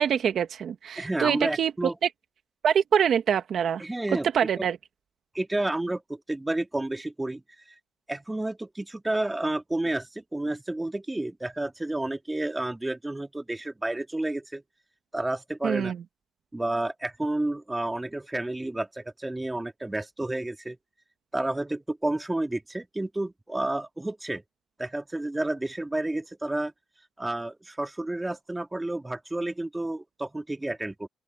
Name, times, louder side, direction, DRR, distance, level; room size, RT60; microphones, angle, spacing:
voice 1, 0.0-1.7 2.6-3.8 4.3-4.8 15.6-16.0, right 8 dB, 60° right, 1.6 m, -24 dB
voice 2, 0.9-2.0 3.8-4.3 4.6-4.7 5.3-7.4 8.1-14.6 15.1-15.9 16.5-20.8 21.3-24.4 24.8-26.7 27.2-31.1, right 2 dB, 15° right, 3.0 m, -30 dB
open air
cardioid pair, 90°, 0 cm